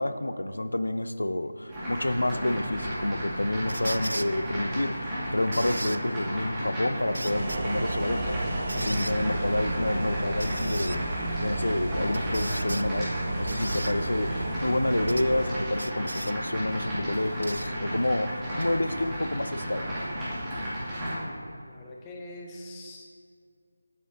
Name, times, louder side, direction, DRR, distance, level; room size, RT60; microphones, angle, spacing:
voice 1, 0.0-20.0, left 1 dB, 80° left, 11 dB, 0.4 m, -29 dB
sound 1, 1.7-21.2, equal, 10° right, 2.2 m, -33 dB
sound 2, 3.7-4.3 5.5-6.0 7.1-7.6 8.7-9.2 10.4-11.0 12.1-12.9 13.5-13.9 15.1-15.3 15.8-16.3 17.4-17.7 18.6-18.7, right 1 dB, 85° right, 0.3 m, -36 dB
sound 3, 7.3-15.5, right 2 dB, 35° right, 1.0 m, -32 dB
voice 2, 21.1-23.1, left 1 dB, 15° left, -1 dB, 0.8 m, -43 dB
9.8 x 8.1 x 2.9 m, 2.2 s
figure-of-eight pair, 165°, 0 cm